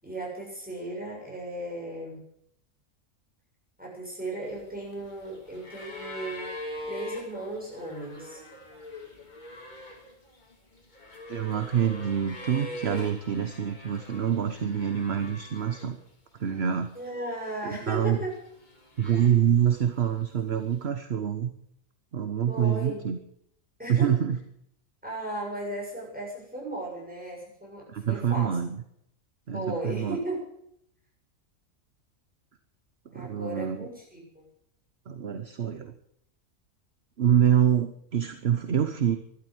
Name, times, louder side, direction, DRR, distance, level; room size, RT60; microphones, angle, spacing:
voice 1, 0.0-2.2 3.8-6.5 6.9-8.4 16.9-18.4 22.5-23.0 23.8-24.1 25.0-28.5 29.5-30.5 33.1-34.4, right 1 dB, 5° right, -3 dB, 7.1 m, -36 dB
sound 1, 4.4-16.1 16.4-17.3 18.0-19.8 20.8-20.9, left 1 dB, 35° left, 2.6 m, -43 dB
voice 2, 11.3-16.0 16.4-16.9 17.6-18.2 19.0-21.5 22.1-23.2 23.9-24.4 27.9-28.8 29.5-30.2 33.1-33.9 35.1-35.9 37.2-39.2, right 9 dB, 55° right, 9 dB, 1.2 m, -26 dB
12.5 x 12.0 x 7.9 m, 0.72 s
omnidirectional pair, 1.4 m